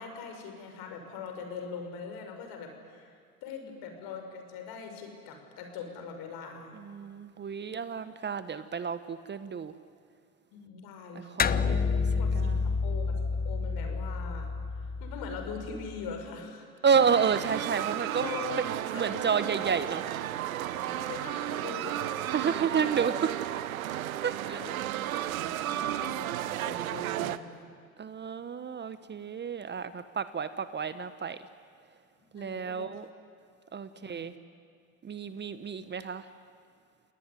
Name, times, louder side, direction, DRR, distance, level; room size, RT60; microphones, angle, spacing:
voice 1, 0.0-6.8 10.5-11.6 11.9-14.5 15.0-16.7 18.2-19.2 20.5-22.6 23.9-24.1 24.5-27.7 32.4-32.9 33.9-34.3, left 5 dB, 60° left, 5 dB, 6.0 m, -42 dB
voice 2, 6.7-9.7 11.1-12.0 12.3-12.7 16.8-18.2 18.9-20.1 22.3-23.3 24.2-24.6 28.0-31.4 32.3-33.1 33.7-34.3 35.0-36.3, right 6 dB, 25° right, 13 dB, 1.1 m, -30 dB
sound 1, 11.4-16.1, left 5 dB, 20° left, 0.8 m, -30 dB
sound 2, 16.9-27.4, right 13 dB, 80° right, 1.0 m, -33 dB
29.0 x 19.0 x 10.0 m, 2.1 s
hypercardioid pair, 80°, 42 cm